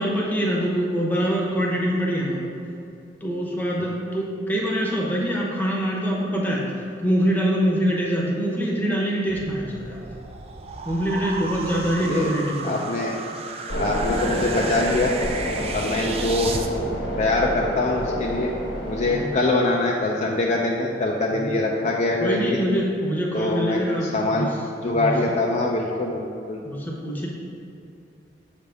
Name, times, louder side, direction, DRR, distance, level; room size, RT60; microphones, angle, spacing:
voice 1, 0.0-2.4 3.2-6.6 7.0-10.1 10.8-12.8 19.1-19.2 21.3-21.5 22.2-24.5 24.9-25.1 26.6-27.3, equal, 10° left, -3 dB, 0.9 m, -24 dB
sound 1, 9.3-16.7, right 4 dB, 35° right, 0.4 m, -33 dB
voice 2, 12.0-12.4 12.6-13.2 13.8-15.1 15.7-16.5 17.2-18.5 18.9-22.6 23.3-24.5 24.8-26.6, left 2 dB, 40° left, -1 dB, 0.4 m, -23 dB
sound 2, 13.7-19.3, equal, 75° left, 1.1 m, -28 dB
6.4 x 3.5 x 5.2 m, 2.6 s
head